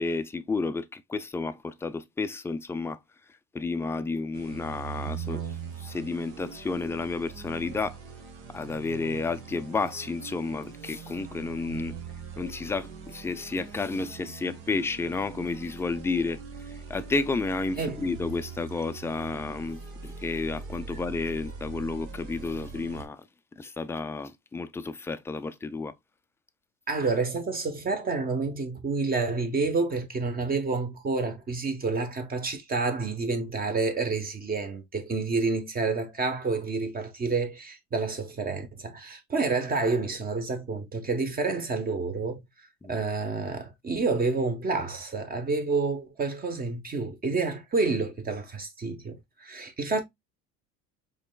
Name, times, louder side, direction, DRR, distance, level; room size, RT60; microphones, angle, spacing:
voice 1, 0.0-3.0 3.5-5.4 5.8-8.0 8.5-12.0 12.4-16.4 16.7-23.2 23.6-25.9 42.8-43.0, left 3 dB, 10° left, 0.3 m, -31 dB
sound 1, 4.3-23.1, right 6 dB, 75° right, 1.3 m, -41 dB
voice 2, 26.9-42.4 42.9-50.0, right 3 dB, 30° right, 0.9 m, -29 dB
5.0 x 3.3 x 2.2 m
supercardioid pair, 110°, 32 cm